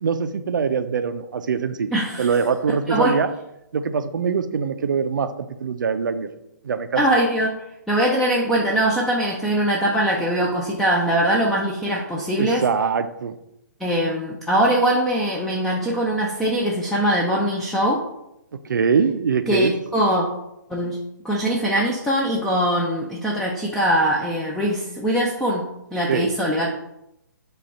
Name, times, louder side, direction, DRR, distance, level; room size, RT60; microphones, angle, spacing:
voice 1, 0.0-1.9 2.2-3.3 3.7-6.3 6.6-7.0 12.4-13.3 18.6-19.7 26.1-26.3, right 6 dB, 75° right, 10 dB, 0.4 m, -23 dB
voice 2, 1.9-2.3 2.9-3.2 7.0-7.6 7.9-12.6 13.8-18.0 19.5-20.2 20.7-21.0 21.2-25.6 25.9-26.7, right 1 dB, 5° left, -4 dB, 0.4 m, -22 dB
5.0 x 2.3 x 4.2 m, 0.85 s
hypercardioid pair, 135°, 10 cm